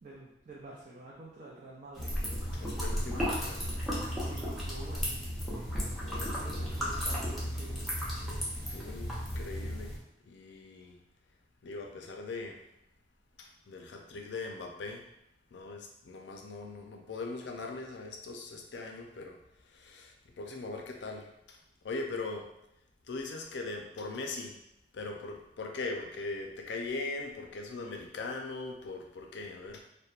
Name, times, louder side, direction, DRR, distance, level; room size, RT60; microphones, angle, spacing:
voice 1, 0.0-2.2 2.7-3.2 4.1-5.3 6.1-8.0, right 2 dB, 45° right, -5 dB, 0.4 m, -49 dB
sound 1, 2.0-10.0, equal, ahead, 0.6 m, -34 dB
voice 2, 2.5-3.6 6.0-6.7 8.7-10.0 10.3-11.0 11.6-12.6 13.4-15.1 15.5-21.6 21.8-22.5 23.0-24.6 24.9-29.8, left 3 dB, 85° left, 2 dB, 0.4 m, -40 dB
2.8 x 2.1 x 2.4 m, 0.80 s
head